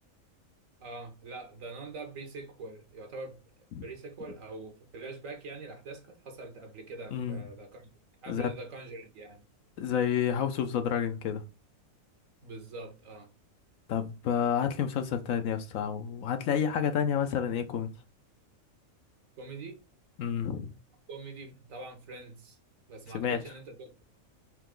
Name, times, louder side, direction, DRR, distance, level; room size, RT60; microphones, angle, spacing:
voice 1, 0.8-3.4 3.8-7.9 8.2-9.4 12.4-13.3 19.4-19.8 21.1-22.6 22.9-24.0, right 3 dB, 70° right, 1.5 m, -43 dB
voice 2, 7.1-7.4 8.3-8.5 9.8-11.4 13.9-17.9 20.2-20.7 23.1-23.4, left 8 dB, 75° left, 1.0 m, -29 dB
4.6 x 2.9 x 3.7 m
omnidirectional pair, 1.4 m